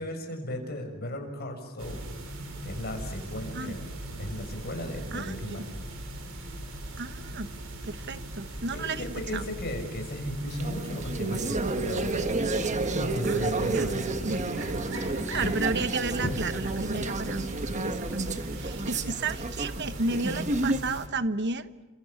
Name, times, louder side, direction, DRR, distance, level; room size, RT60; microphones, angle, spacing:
voice 1, 0.0-2.1 2.6-3.9 4.2-5.6 8.7-12.2 12.9-14.4, left 1 dB, 50° left, 4 dB, 6.7 m, -36 dB
sound 1, 1.8-21.0, right 1 dB, 70° right, 6.9 m, -39 dB
voice 2, 7.0-7.5 7.8-9.0 9.3-9.5 13.2-13.9 14.2-14.4 15.0-21.7, right 3 dB, 55° right, 12 dB, 1.3 m, -32 dB
sound 2, 10.5-21.0, right 2 dB, 35° right, 1.5 m, -31 dB
sound 3, 11.0-17.7, left 2 dB, 70° left, 1.2 m, -41 dB
30.0 x 27.0 x 7.3 m, 1.2 s
head